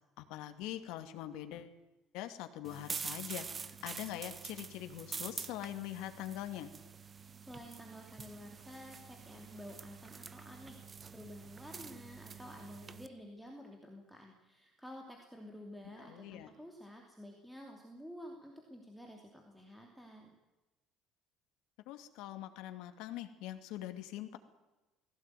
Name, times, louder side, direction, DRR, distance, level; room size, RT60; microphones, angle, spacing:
voice 1, 0.2-1.7 2.1-6.7 16.0-16.5 21.9-24.4, left 13 dB, 80° left, 8 dB, 2.5 m, -43 dB
sound 1, 2.6-13.1, right 5 dB, 20° right, 0.9 m, -46 dB
voice 2, 7.5-10.8 11.1-20.3, equal, ahead, 1 dB, 2.8 m, -51 dB
20.0 x 17.0 x 9.4 m, 1.1 s
cardioid pair, 160°, 0 cm